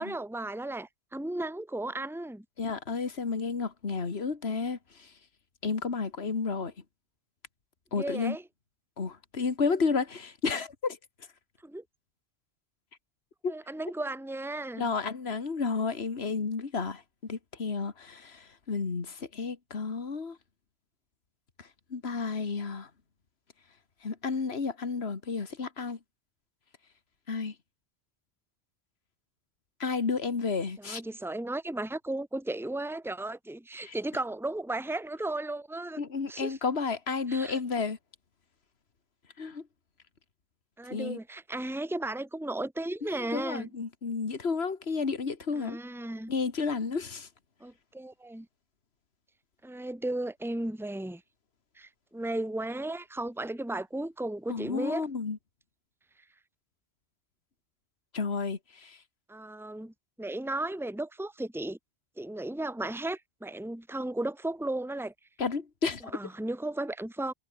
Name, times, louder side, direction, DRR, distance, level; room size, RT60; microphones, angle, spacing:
voice 1, 0.0-2.4 7.9-8.4 11.6-11.8 13.5-14.9 30.8-36.0 36.3-36.6 37.3-37.6 40.8-43.7 45.5-46.3 47.6-48.5 49.6-51.2 51.8-55.1 59.3-61.8 62.2-65.1 66.1-67.3, right 2 dB, ahead, 1.8 m, -35 dB
voice 2, 2.6-5.1 5.6-6.7 7.9-8.4 9.0-11.0 13.4-13.5 14.7-20.4 21.6-22.9 24.0-26.0 27.3-27.5 29.8-31.0 33.8-34.0 36.0-38.0 39.4-39.6 40.9-41.2 43.1-45.8 46.3-47.3 54.5-55.4 58.1-59.0 65.4-66.2, left 4 dB, 70° left, 2.1 m, -32 dB
omnidirectional pair, 1.1 m